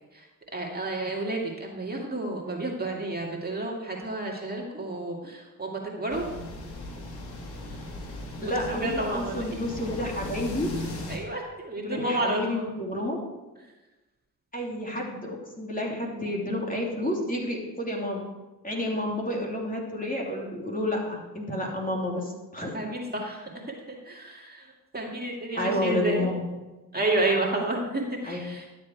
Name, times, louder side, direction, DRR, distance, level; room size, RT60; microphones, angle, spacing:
voice 1, 0.5-6.3 8.7-9.4 11.1-12.6 22.7-24.7 24.9-26.3 26.9-28.6, right 2 dB, 25° right, -1 dB, 2.2 m, -30 dB
sound 1, 6.1-11.2, left 2 dB, 85° left, 1.8 m, -37 dB
voice 2, 8.4-10.7 11.8-13.2 14.5-18.3 18.6-22.8 25.5-26.4 28.2-28.4, left 1 dB, 20° left, -2 dB, 3.0 m, -30 dB
11.5 x 7.5 x 4.7 m, 1.1 s
supercardioid pair, 50°, 37 cm